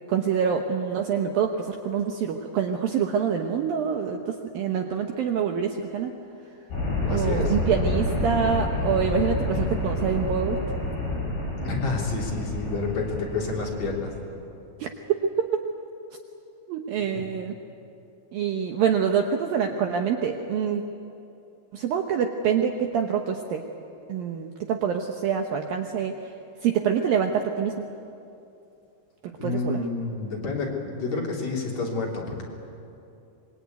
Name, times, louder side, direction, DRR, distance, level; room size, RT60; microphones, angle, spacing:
voice 1, 0.1-6.1 7.0-10.6 14.8-14.9 15.4-15.6 16.7-17.5 18.3-20.8 21.7-23.6 24.1-26.1 26.6-27.7 29.4-29.8, right 7 dB, 70° right, 4 dB, 2.3 m, -26 dB
sound 1, 6.7-14.2, left 2 dB, 60° left, 9.2 m, -28 dB
voice 2, 7.1-7.5 11.6-14.1 29.4-32.4, left 3 dB, 40° left, -2 dB, 4.0 m, -29 dB
25.5 x 22.5 x 9.4 m, 2.7 s
omnidirectional pair, 5.2 m